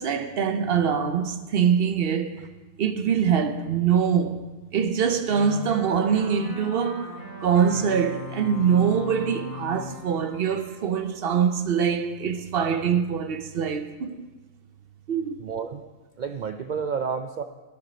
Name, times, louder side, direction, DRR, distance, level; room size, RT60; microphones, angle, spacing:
voice 1, 0.0-2.5 2.8-4.4 4.7-14.2 15.1-15.3, right 7 dB, 55° right, 0.8 m, -24 dB
sound 1, 5.3-11.4, left 2 dB, 35° left, 4.4 m, -39 dB
voice 2, 15.4-15.9 16.2-17.4, right 6 dB, 90° right, 0.4 m, -30 dB
11.5 x 9.6 x 5.0 m
omnidirectional pair, 1.4 m